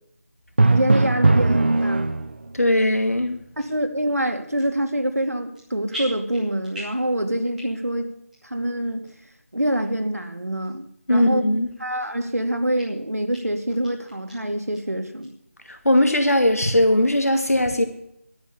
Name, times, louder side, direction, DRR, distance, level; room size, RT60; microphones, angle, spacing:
Drum, 0.6-2.6, right 2 dB, 45° right, 0.7 m, -18 dB
voice 1, 0.7-2.1 3.6-8.1 8.4-9.0 9.5-11.5 11.8-15.3, right 1 dB, 85° right, 5 dB, 2.4 m, -25 dB
voice 2, 2.5-3.4 11.1-11.7 15.8-17.8, left 1 dB, 80° left, 5 dB, 2.4 m, -19 dB
sound 1, 3.6-3.8 4.4-4.9 5.1-5.6 5.9-7.1 7.4-7.9 8.3-8.4 9.0-9.1 9.8-9.9 10.6-10.7 11.1-11.2 11.7-12.3 12.7-12.8 13.3-13.4 13.7-14.3 14.7-14.8 15.2-15.3 15.7-16.2 16.5-16.6, equal, 5° right, 2.6 m, -39 dB
12.0 x 8.4 x 8.2 m, 0.75 s
figure-of-eight pair, 165°, 8 cm